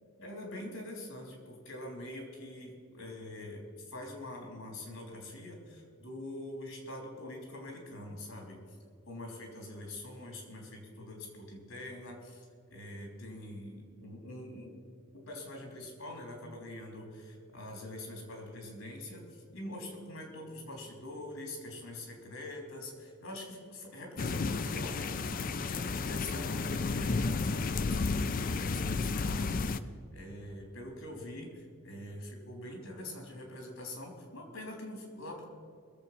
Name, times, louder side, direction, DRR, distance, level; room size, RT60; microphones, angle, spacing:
voice 1, 0.2-8.6 9.1-14.8 15.1-35.5, left 1 dB, 70° left, 1 dB, 3.5 m, -44 dB
sound 1, 24.2-29.8, left 4 dB, 40° left, 0.4 m, -32 dB
21.0 x 7.5 x 5.9 m, 2.2 s
head